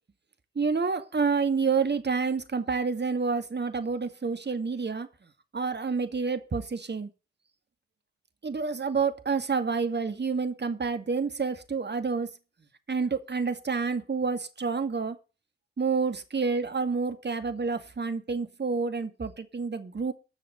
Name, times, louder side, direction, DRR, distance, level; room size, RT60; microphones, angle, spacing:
voice 1, 0.6-5.1 5.5-7.1 8.4-12.3 12.9-15.2 15.8-20.1, right 5 dB, 35° right, 2.3 m, -28 dB
14.0 x 6.5 x 6.6 m
hypercardioid pair, 40°, 29 cm